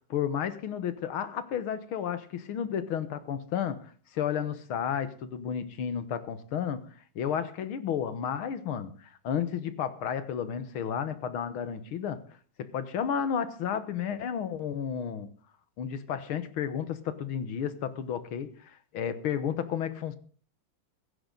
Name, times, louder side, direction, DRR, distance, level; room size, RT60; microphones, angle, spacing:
voice 1, 0.1-3.8 4.1-6.8 7.2-8.9 9.2-12.2 12.7-15.3 15.8-18.5 18.9-20.2, left 8 dB, 85° left, 2.1 m, -32 dB
16.5 x 13.5 x 3.9 m
omnidirectional pair, 2.3 m